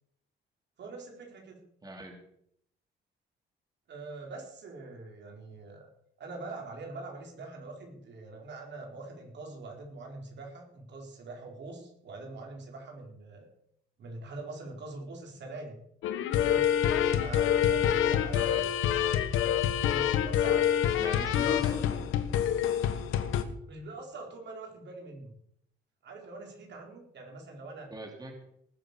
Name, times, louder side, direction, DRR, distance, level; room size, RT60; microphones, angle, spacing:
voice 1, 0.8-1.6 3.9-5.9 6.2-13.5 14.0-15.8 16.4-16.7 17.2-18.7 19.7-20.7 21.4-21.7 23.7-25.3 26.0-27.9, right 3 dB, 60° right, 1 dB, 4.6 m, -44 dB
voice 2, 1.8-2.2 18.3-18.7 21.0-22.0 27.9-28.3, right 2 dB, 20° right, 2 dB, 3.2 m, -41 dB
sound 1, 16.0-23.4, left 10 dB, 85° left, 1.3 m, -26 dB
19.5 x 7.7 x 7.0 m, 0.71 s
cardioid pair, 90°, 20 cm